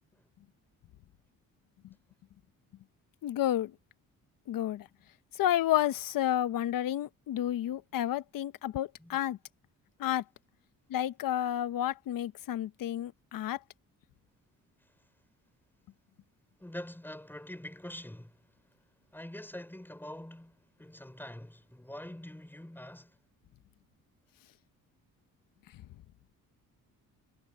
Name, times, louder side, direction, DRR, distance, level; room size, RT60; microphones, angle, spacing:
voice 1, 3.2-3.7 4.5-4.9 5.4-9.4 10.0-10.2 10.9-13.6, left 12 dB, 75° left, 1.1 m, -30 dB
voice 2, 16.6-18.4 19.1-23.2, left 1 dB, 5° left, 4.9 m, -45 dB
cardioid pair, 90°, 34 cm